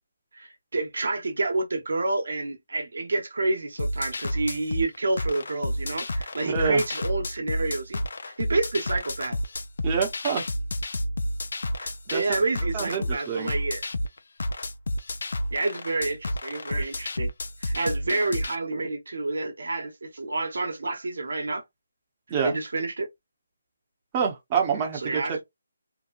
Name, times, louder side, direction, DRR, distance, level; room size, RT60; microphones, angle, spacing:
voice 1, 0.3-9.4 11.8-13.8 15.5-17.3 17.6-21.6 22.4-23.1 24.9-25.4, right 2 dB, 75° right, 1.0 m, -29 dB
sound 1, 3.8-18.6, left 1 dB, 70° left, 0.5 m, -30 dB
voice 2, 6.4-6.8 9.8-10.5 12.1-12.2 12.7-13.5 22.3-22.5 24.1-25.4, right 6 dB, 20° right, 0.8 m, -26 dB
2.8 x 2.2 x 2.5 m
hypercardioid pair, 165°, 0 cm